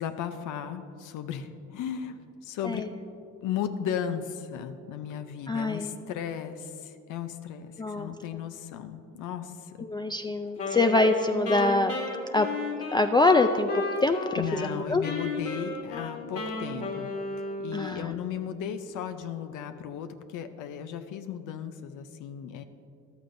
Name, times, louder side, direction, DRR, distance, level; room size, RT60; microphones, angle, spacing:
voice 1, 0.0-2.8 3.4-9.9 14.4-17.1 17.4-22.6, left 8 dB, 90° left, 8 dB, 0.6 m, -35 dB
voice 2, 5.5-6.0 7.8-8.1 9.8-11.9 12.3-12.5 12.9-15.0 17.7-18.1, left 2 dB, 15° left, 6 dB, 0.3 m, -25 dB
Wind instrument woodwind instrument, 10.6-14.7 15.0-17.9, left 3 dB, 50° left, 1.7 m, -33 dB
14.0 x 11.5 x 2.6 m, 2.5 s
cardioid pair, 90°, 30 cm